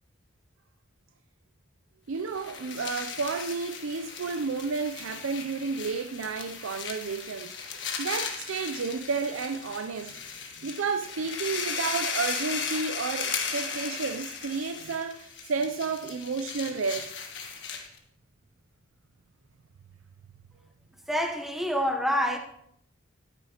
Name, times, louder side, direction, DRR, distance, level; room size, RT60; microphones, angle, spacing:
voice 1, 2.1-10.2 10.6-17.1, right 4 dB, 85° right, 0.5 m, -32 dB
sound 1, 2.2-18.0, left 6 dB, 60° left, 1.5 m, -36 dB
voice 2, 21.1-22.4, equal, ahead, 0.9 m, -27 dB
12.5 x 10.0 x 2.9 m
head